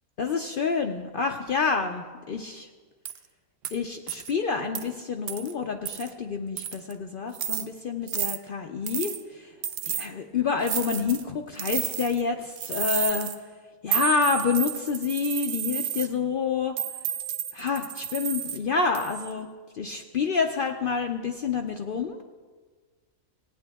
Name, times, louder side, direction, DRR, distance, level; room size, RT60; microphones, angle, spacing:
voice 1, 0.2-2.7 3.7-9.5 9.8-13.3 13.8-16.7 17.5-22.2, left 5 dB, 65° left, 4 dB, 0.5 m, -28 dB
sound 1, 3.0-3.2 3.6-3.8 4.1-4.3 4.7-4.8 5.3-5.5 5.9-6.1 6.6-6.9 7.3-7.6 8.1-8.4 8.9-9.2 9.6-10.1 10.6-11.2 11.6-12.2 12.6-13.4 13.9-16.1 16.8-18.6 18.9-19.3, right 9 dB, 65° right, 0.6 m, -31 dB
17.5 x 9.0 x 3.4 m, 1.5 s
omnidirectional pair, 1.5 m